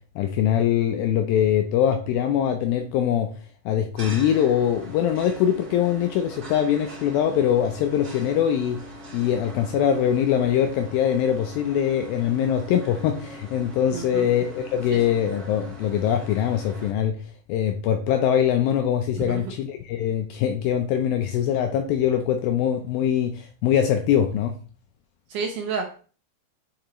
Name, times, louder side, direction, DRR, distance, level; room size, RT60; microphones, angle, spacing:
voice 1, 0.2-3.3 3.7-8.8 9.1-17.2 17.5-24.6, left 9 dB, 90° left, 5 dB, 2.0 m, -23 dB
sound 1, 4.0-16.9, equal, 45° right, 1.2 m, -41 dB
voice 2, 13.9-14.3 14.9-15.0 19.2-19.4 25.3-26.1, right 5 dB, 80° right, 2 dB, 1.8 m, -30 dB
9.1 x 5.5 x 3.0 m, 0.39 s
omnidirectional pair, 4.9 m